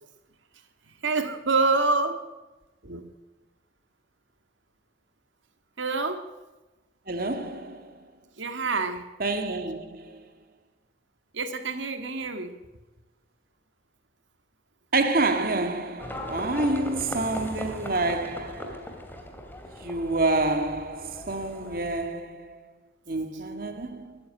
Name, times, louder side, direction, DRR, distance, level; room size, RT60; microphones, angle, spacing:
voice 1, 0.9-2.2 2.8-3.1 5.8-6.2 8.4-9.0 11.3-12.5, right 3 dB, 75° right, 1.8 m, -27 dB
voice 2, 7.1-7.9 9.2-10.2 14.9-18.9 19.8-22.6 23.1-24.2, right 2 dB, 50° right, 1.9 m, -28 dB
Livestock farm animals working animals, 16.0-22.1, left 1 dB, 10° left, 2.8 m, -39 dB
23.0 x 13.5 x 9.6 m
head